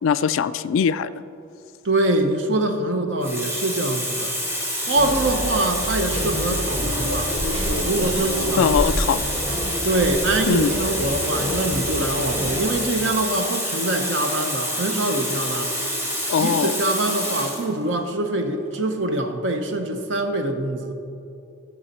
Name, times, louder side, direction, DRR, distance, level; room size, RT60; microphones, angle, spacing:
voice 1, 0.0-1.1 8.6-9.2 10.5-10.8 16.3-16.8, left 7 dB, 65° left, 14 dB, 0.3 m, -21 dB
voice 2, 1.8-4.4 4.9-8.7 9.8-15.7 16.4-20.9, right 2 dB, 60° right, 6 dB, 0.8 m, -24 dB
Water tap faucet, 2.4-2.6 3.2-17.7 18.6-18.8, equal, 10° right, 1.3 m, -27 dB
sound 1, 5.0-12.8, equal, 30° right, 1.8 m, -29 dB
14.5 x 7.0 x 4.2 m, 2.8 s
head